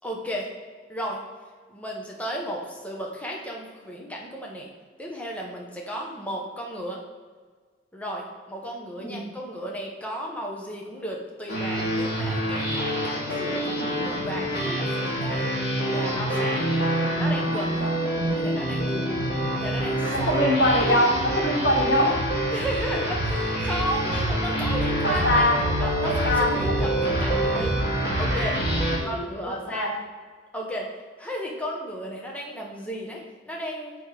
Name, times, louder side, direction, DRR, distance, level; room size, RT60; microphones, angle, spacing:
voice 1, 0.0-0.5 0.9-1.2 1.7-4.7 5.0-7.0 7.9-15.5 15.9-16.6 17.1-18.0 18.3-20.3 22.5-27.9 28.2-28.6 29.0-30.0 30.5-34.0, equal, 10° left, -2 dB, 1.0 m, -34 dB
sound 1, 11.5-29.0, right 1 dB, 60° left, 2.2 m, -26 dB
voice 2, 20.1-22.1 24.1-24.2 25.0-25.6 26.0-26.5 29.0-29.3 29.7-29.9, left 1 dB, 80° left, -1 dB, 1.8 m, -23 dB
6.5 x 5.2 x 4.8 m, 1.5 s
head